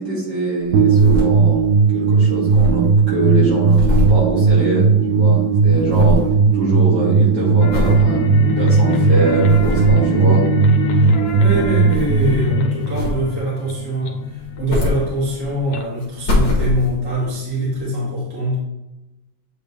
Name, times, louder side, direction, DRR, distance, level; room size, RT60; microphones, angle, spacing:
voice 1, 0.0-1.6 1.9-6.2 6.5-10.4, right 2 dB, 50° right, -7 dB, 2.6 m, -22 dB
sound 1, 0.6-1.8 2.0-2.1 2.3-5.1 5.4-6.4 6.8-7.1 7.7-8.1 8.6-8.7 9.2-10.1 11.1-12.5 12.9-13.5 14.3-15.6 16.0-17.2 17.8-17.9, left 2 dB, 60° left, 1.8 m, -23 dB
sound 2, 0.7-13.8, right 5 dB, 70° right, 1.3 m, -16 dB
sound 3, 7.6-16.5, left 10 dB, 90° left, 1.6 m, -26 dB
voice 2, 10.9-18.5, right 1 dB, 10° right, -6 dB, 1.5 m, -23 dB
8.4 x 3.4 x 3.2 m, 0.97 s
omnidirectional pair, 2.3 m